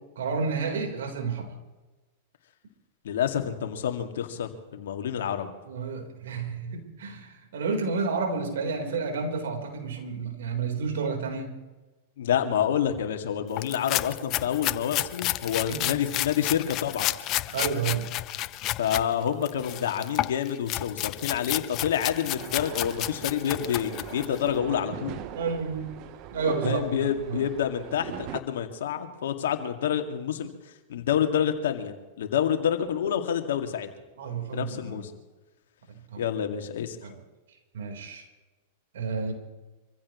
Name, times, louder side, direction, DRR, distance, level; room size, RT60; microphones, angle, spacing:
voice 1, 0.2-1.5 5.7-11.6 15.6-15.9 17.5-18.1 25.3-25.9 26.3-27.4 34.2-35.0 36.1-36.2 37.0-37.2 37.7-38.2 38.9-39.3, right 4 dB, 75° right, 3 dB, 4.1 m, -30 dB
voice 2, 3.0-5.5 12.2-17.1 18.8-25.1 26.6-30.5 30.9-33.9 34.5-35.1 36.2-37.0, left 9 dB, 75° left, 5 dB, 2.1 m, -28 dB
sound 1, 13.6-19.0 19.4-24.4, left 16 dB, 40° left, 0.7 m, -31 dB
sound 2, 22.4-28.4, right 11 dB, 45° right, 1.1 m, -40 dB
25.5 x 15.5 x 3.2 m, 1.2 s
hypercardioid pair, 110°, 0 cm